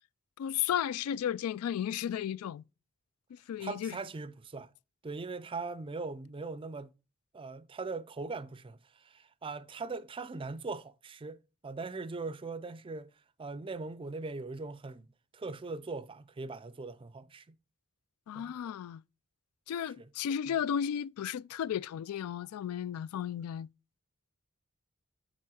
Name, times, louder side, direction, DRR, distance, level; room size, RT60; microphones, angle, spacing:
voice 1, 0.4-2.6 3.3-3.9 18.3-19.0 19.7-23.7, left 9 dB, 85° left, 0.3 m, -34 dB
voice 2, 3.6-4.7 5.0-6.9 7.3-13.1 13.4-15.1 15.3-17.5 18.3-18.5 20.0-20.1 20.5-20.6, right 3 dB, 25° right, 0.4 m, -40 dB
7.4 x 4.2 x 4.7 m
head